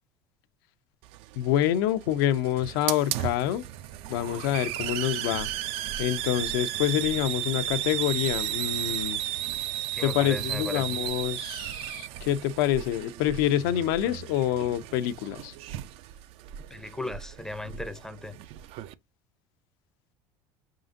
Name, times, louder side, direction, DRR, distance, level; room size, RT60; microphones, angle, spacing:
Hiss, 1.0-18.9, right 13 dB, 65° right, 0.4 m, -34 dB
voice 1, 1.4-3.7 4.1-5.5 6.0-9.2 10.0-15.5, left 11 dB, 85° left, 0.5 m, -27 dB
voice 2, 9.9-11.0 16.7-18.4, left 2 dB, 5° left, 0.5 m, -37 dB
5.0 x 3.7 x 2.6 m
supercardioid pair, 115°, 11 cm